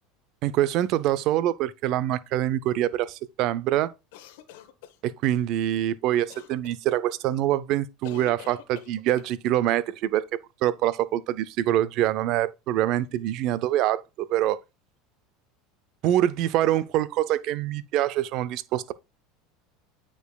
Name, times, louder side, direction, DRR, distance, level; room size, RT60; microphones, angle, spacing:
voice 1, 0.4-3.9 5.0-10.3 10.6-14.6 16.0-18.9, right 13 dB, 55° right, 0.5 m, -25 dB
sound 1, 4.1-5.4 6.3-6.8 8.0-9.3, left 11 dB, 75° left, 1.0 m, -46 dB
8.9 x 4.9 x 2.3 m
supercardioid pair, 115°, 0 cm